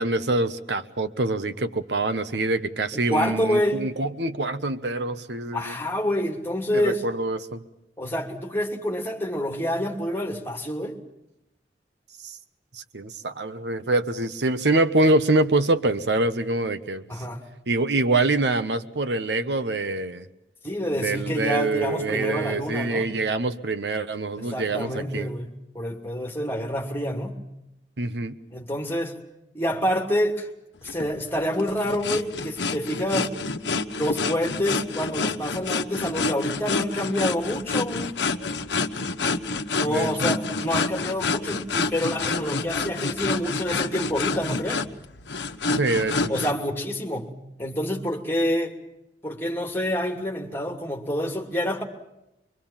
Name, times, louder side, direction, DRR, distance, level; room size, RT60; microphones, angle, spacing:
voice 1, 0.0-5.8 6.7-7.6 12.2-12.4 12.7-17.0 17.7-20.3 20.9-25.3 28.0-28.3 39.9-40.3 45.7-46.3, right 2 dB, 80° right, 10 dB, 1.2 m, -25 dB
voice 2, 2.9-3.8 5.5-7.0 8.0-11.0 17.1-17.4 20.6-23.1 24.4-27.4 28.5-29.2 29.5-30.5 30.8-33.3 33.9-38.2 39.7-44.8 46.3-47.3 47.6-48.7 49.2-51.8, equal, 15° left, 2 dB, 2.8 m, -27 dB
sound 1, 30.8-46.5, left 4 dB, 90° left, 1.1 m, -28 dB
25.0 x 24.0 x 7.3 m, 0.89 s
head